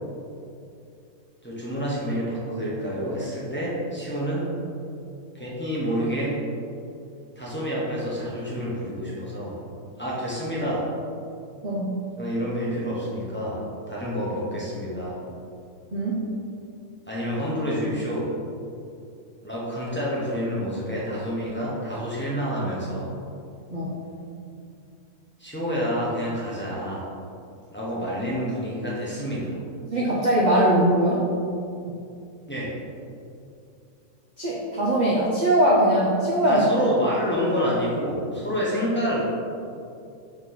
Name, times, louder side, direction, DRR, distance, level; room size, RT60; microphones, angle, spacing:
voice 1, 1.4-4.5 5.3-6.4 7.4-9.6 10.0-10.9 12.2-13.6 13.9-15.2 17.1-18.3 19.4-23.1 25.4-27.1 27.7-29.6 32.5-32.7 36.5-39.2, equal, 10° left, -7 dB, 1.1 m, -28 dB
voice 2, 11.6-11.9 15.9-16.2 23.7-24.0 29.9-31.3 34.4-36.7, right 1 dB, 40° right, -5 dB, 0.7 m, -21 dB
5.6 x 4.4 x 4.3 m, 2.5 s
omnidirectional pair, 1.5 m